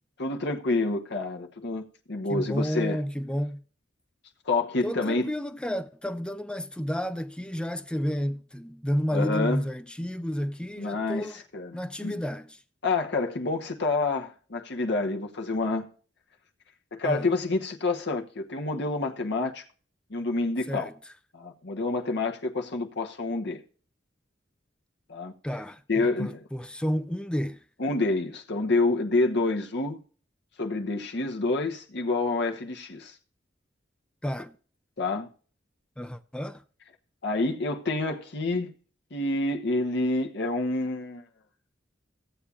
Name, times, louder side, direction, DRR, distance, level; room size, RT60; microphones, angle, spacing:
voice 1, 0.2-3.0 4.5-5.3 9.1-9.6 10.8-12.2 12.8-15.9 16.9-19.6 20.1-20.9 21.3-23.6 25.1-25.3 25.9-26.4 27.8-30.0 30.6-33.2 35.0-35.3 37.2-38.7 39.1-41.2, left 3 dB, 65° left, 1.1 m, -28 dB
voice 2, 2.3-3.6 4.8-11.4 11.7-12.6 17.0-17.3 20.7-20.9 25.4-27.6 34.2-34.6 36.0-36.6, equal, 5° left, 0.5 m, -31 dB
16.0 x 8.4 x 2.4 m
head